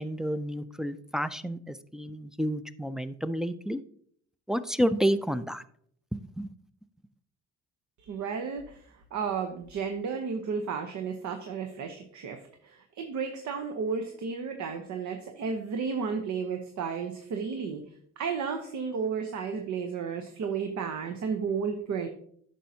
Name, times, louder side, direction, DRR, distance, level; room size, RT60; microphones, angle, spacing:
voice 1, 0.0-3.8 4.5-5.6 6.4-6.5, equal, ahead, 10 dB, 0.3 m, -30 dB
voice 2, 8.0-17.8 18.2-22.1, right 5 dB, 70° right, 5 dB, 0.9 m, -33 dB
9.9 x 6.4 x 2.8 m, 0.63 s
cardioid pair, 90°, 30 cm